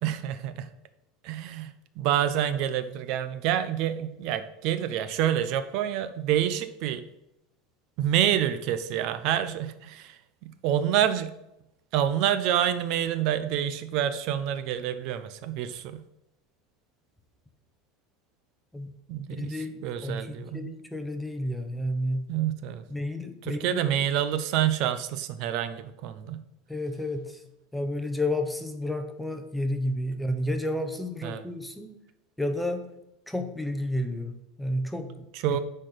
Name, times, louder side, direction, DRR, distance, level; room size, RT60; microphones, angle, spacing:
voice 1, 0.0-0.7 1.2-7.0 8.0-11.3 11.9-16.0 19.1-19.6 19.8-20.7 22.3-22.8 23.4-26.4 31.2-31.4 35.3-35.6, right 10 dB, 45° right, 11 dB, 0.6 m, -27 dB
voice 2, 19.4-22.3 22.9-24.1 26.7-27.4 27.7-31.9 32.4-32.9 33.3-35.6, left 1 dB, ahead, 7 dB, 0.7 m, -31 dB
9.9 x 4.3 x 6.6 m, 0.86 s
supercardioid pair, 170°, 0 cm